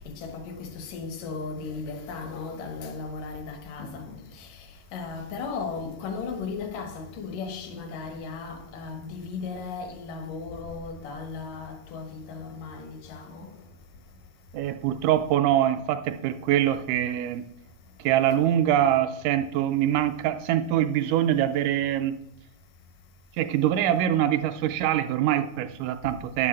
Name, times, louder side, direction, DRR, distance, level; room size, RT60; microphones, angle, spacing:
voice 1, 0.1-4.5 4.9-13.5, left 4 dB, 70° left, 2.9 m, -36 dB
voice 2, 14.5-17.5 18.0-22.2 23.4-26.5, right 11 dB, 80° right, 1.8 m, -24 dB
10.0 x 7.6 x 7.4 m
omnidirectional pair, 4.1 m